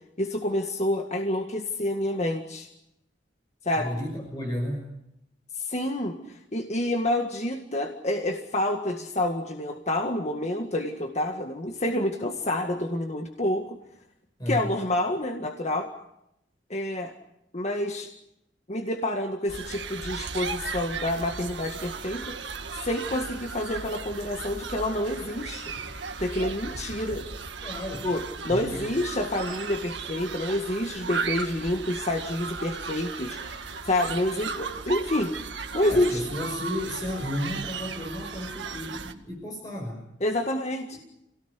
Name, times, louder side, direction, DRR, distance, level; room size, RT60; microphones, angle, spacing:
voice 1, 0.2-2.7 3.6-3.9 5.5-13.8 14.5-15.9 16.7-17.1 17.5-18.1 18.7-22.4 22.8-25.7 26.2-27.3 28.0-35.4 35.7-36.2 40.2-41.0, left 1 dB, 40° left, 4 dB, 1.9 m, -28 dB
voice 2, 3.8-4.9 14.4-14.7 27.6-28.1 28.5-28.8 35.8-40.0, left 1 dB, 20° left, 0 dB, 5.7 m, -33 dB
sound 1, 19.5-39.1, right 5 dB, 75° right, 1.9 m, -36 dB
28.5 x 18.0 x 9.8 m, 0.84 s
head